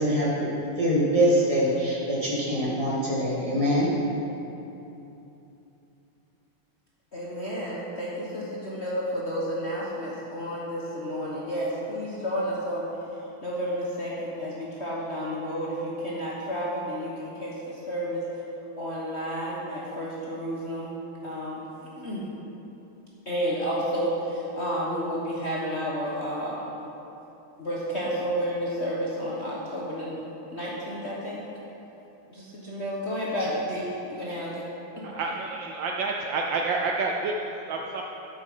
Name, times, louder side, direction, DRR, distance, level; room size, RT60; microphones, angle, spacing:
voice 1, 0.0-3.9, equal, 15° right, -7 dB, 2.0 m, -24 dB
voice 2, 7.1-12.9 13.4-18.3 18.8-20.9 21.2-21.6 22.0-22.2 23.3-26.7 27.6-30.2 30.5-31.4 32.3-33.8 34.1-34.6 35.0-35.1, equal, 40° left, -6 dB, 1.1 m, -31 dB
voice 3, 35.0-38.0, right 3 dB, 70° right, 1 dB, 1.2 m, -29 dB
9.5 x 7.9 x 5.4 m, 2.9 s
omnidirectional pair, 2.4 m